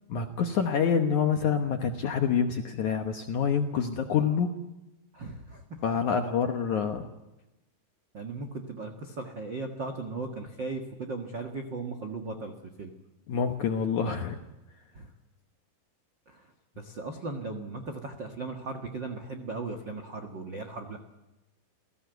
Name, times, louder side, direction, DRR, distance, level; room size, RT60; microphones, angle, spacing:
voice 1, 0.1-4.5 5.8-7.1 13.3-14.4, left 6 dB, 70° left, 5 dB, 1.9 m, -27 dB
voice 2, 5.1-5.8 8.1-12.5 12.8-12.9 14.9-15.1 16.3-16.4 16.8-21.0, right 3 dB, 70° right, 5 dB, 1.0 m, -37 dB
28.5 x 17.0 x 8.1 m, 1.0 s
omnidirectional pair, 5.0 m